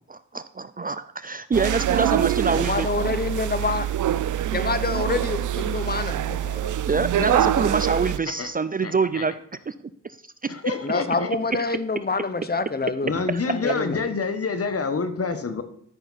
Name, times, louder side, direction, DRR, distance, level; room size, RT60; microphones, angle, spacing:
voice 1, 0.1-2.9 6.9-9.3 9.7-9.8 10.0-10.2 10.4-10.5 13.3-13.4, right 4 dB, 30° right, 14 dB, 0.4 m, -25 dB
sound 1, 1.5-8.2, right 11 dB, 80° right, 0.5 m, -25 dB
voice 2, 2.5-3.9 4.5-6.7 10.8-13.2 13.4-14.0, left 3 dB, 30° left, 11 dB, 1.0 m, -27 dB
voice 3, 8.8-9.2 10.5-11.3 13.0-15.6, left 4 dB, 50° left, 8 dB, 1.3 m, -27 dB
13.0 x 5.9 x 4.2 m, 0.65 s
cardioid pair, 65°, 30 cm